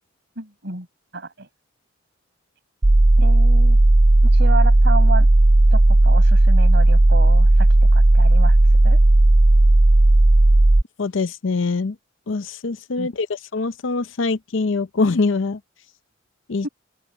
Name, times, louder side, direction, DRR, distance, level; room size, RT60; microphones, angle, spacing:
voice 1, 0.4-0.9 1.1-1.5 3.2-3.8 4.3-5.3 5.7-8.6 8.8-9.0 13.0-13.1 16.6-16.7, right 3 dB, 60° right, 5.3 m, -30 dB
sound 1, 2.8-10.8, right 2 dB, 20° right, 0.5 m, -14 dB
voice 2, 11.0-11.9 12.3-15.6 16.5-16.7, left 3 dB, 70° left, 0.6 m, -23 dB
open air
head